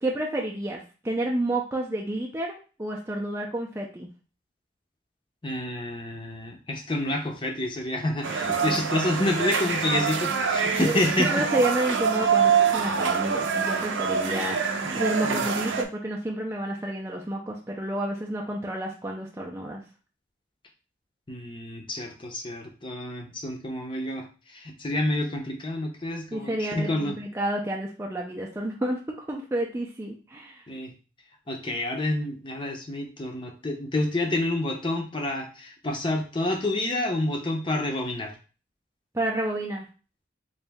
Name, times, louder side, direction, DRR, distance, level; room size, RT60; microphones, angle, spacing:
voice 1, 0.0-4.1 10.7-14.6 14.9-19.8 26.3-30.6 39.1-39.9, right 1 dB, 15° right, -1 dB, 0.4 m, -30 dB
voice 2, 5.4-11.4 14.8-15.0 15.2-15.4 21.3-27.2 30.7-30.9 31.5-38.3, left 1 dB, 25° left, 3 dB, 0.7 m, -29 dB
sound 1, 8.2-15.8, right 6 dB, 75° right, 0.6 m, -25 dB
4.0 x 2.7 x 3.4 m, 0.35 s
head